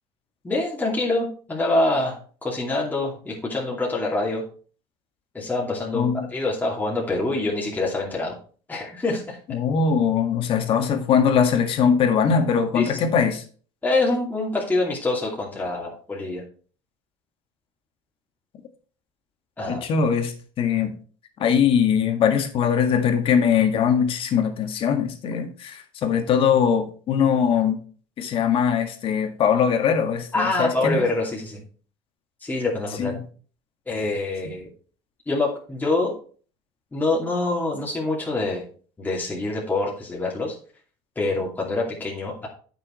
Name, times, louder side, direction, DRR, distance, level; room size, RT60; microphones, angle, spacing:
voice 1, 0.4-4.4 5.3-8.4 8.7-9.6 12.7-13.0 13.8-16.4 19.6-19.8 30.3-31.6 32.4-33.2 33.9-34.7 35.3-36.1 36.9-38.6 39.0-40.6 41.2-42.5, left 2 dB, 15° left, -3 dB, 2.6 m, -25 dB
voice 2, 5.9-6.3 9.5-13.4 19.7-20.9 21.4-27.8 28.2-31.0 33.0-33.1, left 7 dB, 50° left, 6 dB, 1.8 m, -21 dB
9.0 x 6.3 x 4.4 m, 0.42 s
supercardioid pair, 100°, 11 cm